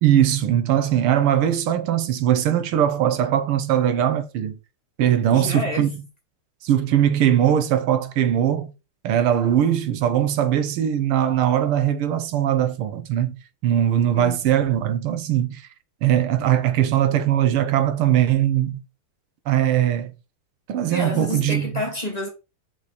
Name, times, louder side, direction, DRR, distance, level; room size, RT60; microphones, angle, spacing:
voice 1, 0.0-4.6 5.0-5.9 6.6-8.7 9.0-15.7 16.0-18.8 19.5-20.1 20.7-21.7, right 10 dB, 85° right, 1.7 m, -20 dB
voice 2, 5.3-5.9 14.1-14.4 20.9-22.3, left 1 dB, 20° left, 1.7 m, -28 dB
5.8 x 4.1 x 4.8 m
omnidirectional pair, 2.4 m